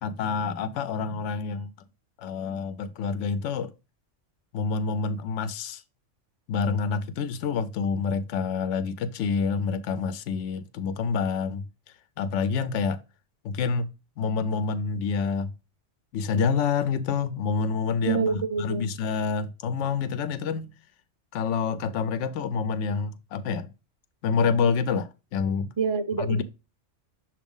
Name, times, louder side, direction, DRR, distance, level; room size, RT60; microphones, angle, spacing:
voice 1, 0.0-1.7 2.2-3.7 4.5-5.8 6.5-11.7 12.2-13.0 13.4-13.9 14.2-15.5 16.1-20.7 21.3-23.7 24.2-25.7 26.2-26.4, left 5 dB, 75° left, 0.9 m, -27 dB
voice 2, 18.0-18.9 25.8-26.4, right 6 dB, 40° right, 0.4 m, -27 dB
7.1 x 2.5 x 5.3 m
omnidirectional pair, 1.3 m